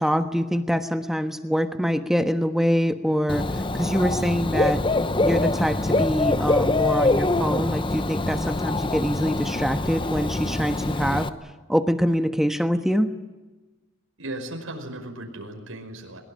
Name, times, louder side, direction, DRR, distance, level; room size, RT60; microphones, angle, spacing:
voice 1, 0.0-4.8 5.2-11.3 11.7-13.1, equal, ahead, 7 dB, 1.3 m, -24 dB
Dog / Bird, 3.3-11.3, left 2 dB, 25° left, 0.8 m, -24 dB
voice 2, 14.2-16.2, right 1 dB, 80° right, 3 dB, 5.5 m, -36 dB
22.5 x 22.0 x 9.9 m, 1.2 s
head